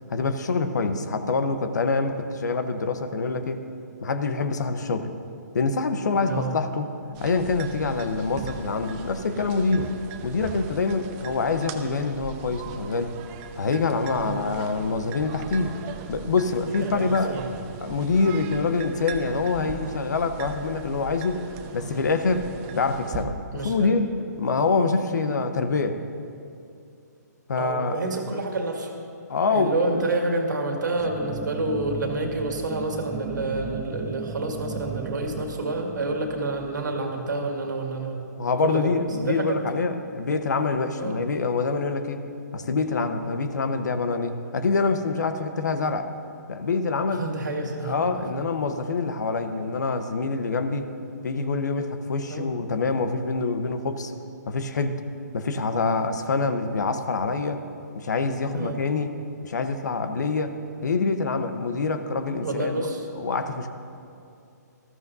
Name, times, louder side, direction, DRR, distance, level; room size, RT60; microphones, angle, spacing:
voice 1, 0.1-3.6 4.0-5.1 5.5-6.9 7.2-10.0 10.2-13.2 13.6-15.8 16.1-17.4 17.8-21.4 21.7-22.5 22.7-26.0 27.5-28.4 29.3-30.0 38.4-42.2 42.5-46.1 46.5-47.2 47.6-50.9 51.2-54.1 54.5-55.0 55.3-57.6 57.9-59.1 59.4-60.5 60.8-62.9 63.2-63.7, left 4 dB, 70° left, 9 dB, 1.0 m, -25 dB
voice 2, 6.2-6.5 14.2-14.5 16.8-17.5 23.5-23.9 27.6-29.0 29.5-38.3 38.6-38.9 39.2-39.9 41.0-41.2 47.1-48.4 52.3-52.5 58.5-58.8 62.4-63.1, right 2 dB, 80° right, 1 dB, 2.1 m, -29 dB
sound 1, 7.1-23.3, right 6 dB, 25° right, 0.9 m, -39 dB
sound 2, 30.9-37.7, right 6 dB, 10° right, 0.4 m, -38 dB
19.0 x 14.0 x 2.7 m, 2.6 s
hypercardioid pair, 140°, 10 cm